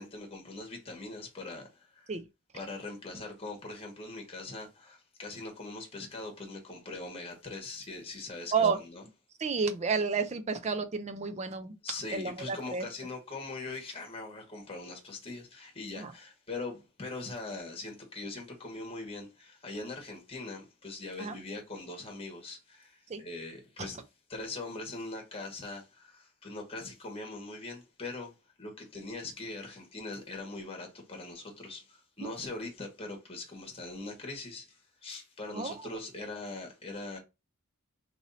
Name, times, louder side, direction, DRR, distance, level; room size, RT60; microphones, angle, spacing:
voice 1, 0.0-2.1 2.5-9.0 11.8-24.0 24.3-28.3 28.6-37.2, left 3 dB, 25° left, 1.2 m, -41 dB
voice 2, 9.4-11.8 12.1-12.9 16.0-16.1 21.2-21.4 23.1-23.2 23.8-23.9 32.2-32.3 35.5-35.7, right 5 dB, 30° right, 0.4 m, -31 dB
3.0 x 2.7 x 3.9 m
head